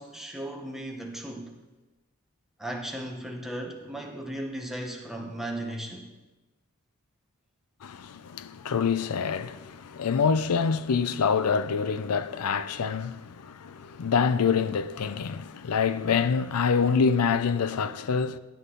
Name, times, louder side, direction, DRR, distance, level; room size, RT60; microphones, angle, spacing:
voice 1, 0.0-1.5 2.6-6.1, right 1 dB, ahead, 1.0 m, -36 dB
voice 2, 7.8-18.4, left 6 dB, 90° left, 0.5 m, -26 dB
11.5 x 8.2 x 3.8 m
head